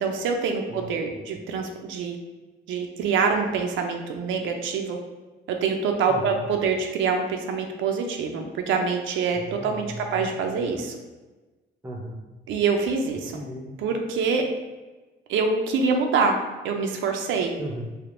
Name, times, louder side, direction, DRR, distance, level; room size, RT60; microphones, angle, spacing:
voice 1, 0.0-2.2 2.7-5.0 5.5-11.0 12.5-13.4 13.8-14.5 15.3-16.4 16.6-17.5, right 5 dB, 80° right, 3 dB, 0.4 m, -25 dB
voice 2, 6.1-6.4 9.3-10.6 11.8-12.2 13.3-13.8 17.6-17.8, right 1 dB, 10° right, 1 dB, 0.5 m, -37 dB
3.4 x 2.4 x 2.5 m, 1.2 s
cardioid pair, 90°, 20 cm